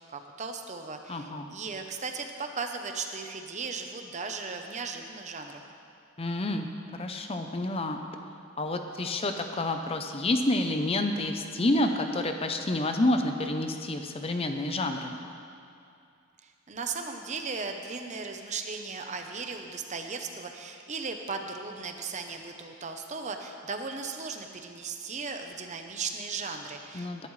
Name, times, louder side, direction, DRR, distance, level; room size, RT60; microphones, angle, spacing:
voice 1, 0.1-5.6 16.4-27.3, right 4 dB, 35° right, 5 dB, 0.7 m, -37 dB
voice 2, 1.1-1.5 6.2-6.7 6.9-8.0 8.6-15.2 26.9-27.3, left 1 dB, 25° left, 6 dB, 0.6 m, -29 dB
19.5 x 11.0 x 3.2 m, 2.5 s
head